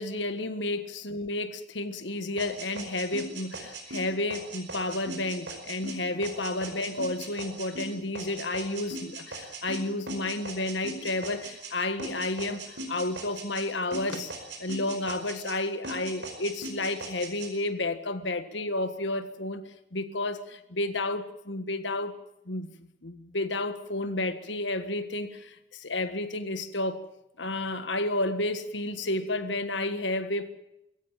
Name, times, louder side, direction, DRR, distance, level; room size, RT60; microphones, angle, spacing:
voice 1, 0.0-14.3 14.6-19.6 19.9-22.1 22.4-22.8 23.0-27.0 27.4-30.5, left 2 dB, 85° left, 1.6 m, -31 dB
sound 1, 2.4-11.7 12.0-13.7 13.9-15.6 15.8-17.5, right 2 dB, 80° right, 5.1 m, -39 dB
21.5 x 16.5 x 7.4 m
head